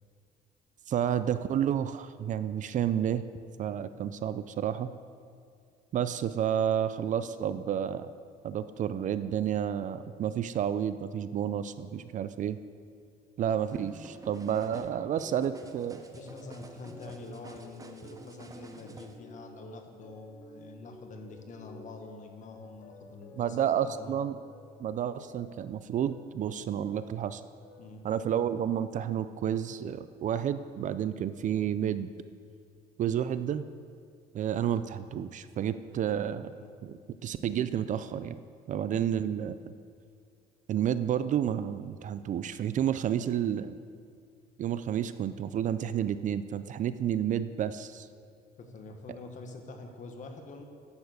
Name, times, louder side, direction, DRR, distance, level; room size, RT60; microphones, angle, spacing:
voice 1, 0.9-3.2 3.6-4.9 5.9-8.1 8.4-12.6 13.4-16.0 23.4-24.4 24.8-27.4 28.0-32.1 33.0-33.7 34.3-36.5 36.8-36.9 37.2-38.4 38.7-39.6 40.7-43.8 44.6-48.1, right 9 dB, 50° right, 13 dB, 0.4 m, -30 dB
sound 1, 13.7-19.1, right 3 dB, 20° right, 0.8 m, -49 dB
sound 2, 15.2-25.7 26.0-27.3 27.6-28.1, left 2 dB, 75° left, 1.9 m, -52 dB
voice 2, 16.1-24.2 27.8-28.0 36.4-36.7 38.9-39.1 48.6-50.6, left 3 dB, 45° left, 4 dB, 1.4 m, -46 dB
10.0 x 7.1 x 6.5 m, 2.3 s
cardioid pair, 110°, 17 cm